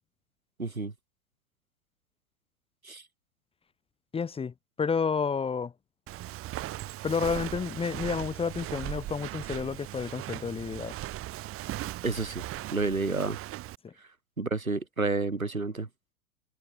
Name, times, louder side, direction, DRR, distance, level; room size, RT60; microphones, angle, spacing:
voice 1, 0.6-0.9 2.8-3.0 12.0-12.4 12.7-13.4 14.4-15.9, right 3 dB, 85° right, 4.9 m, -30 dB
voice 2, 4.1-5.7 7.0-10.9 13.8-13.9, left 5 dB, 15° left, 1.8 m, -30 dB
Walk footsteps, 6.1-13.8, right 15 dB, 35° right, 5.1 m, -38 dB
figure-of-eight pair, 95°, 40 cm